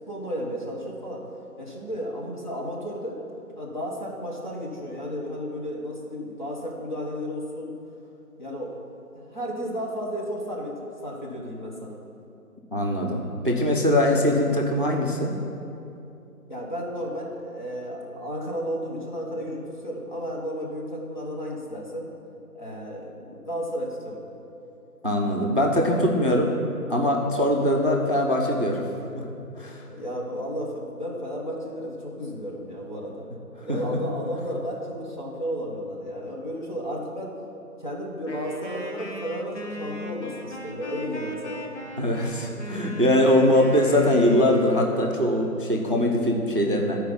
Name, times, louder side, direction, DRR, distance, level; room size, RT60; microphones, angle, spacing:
voice 1, 0.1-1.3 1.6-3.2 3.6-7.7 8.4-12.0 16.5-22.1 22.5-24.2 29.9-33.3 33.7-37.4 37.8-41.7, equal, 30° left, -4 dB, 1.2 m, -33 dB
voice 2, 12.7-15.3 25.0-26.5 26.9-28.9 29.1-29.3 29.6-29.8 33.7-34.0 42.0-47.0, left 1 dB, 35° right, 0 dB, 0.6 m, -22 dB
Wind instrument woodwind instrument, 38.3-44.9, equal, 50° left, 1.3 m, -37 dB
11.5 x 4.6 x 5.3 m, 2.8 s
figure-of-eight pair, 170°, 45 cm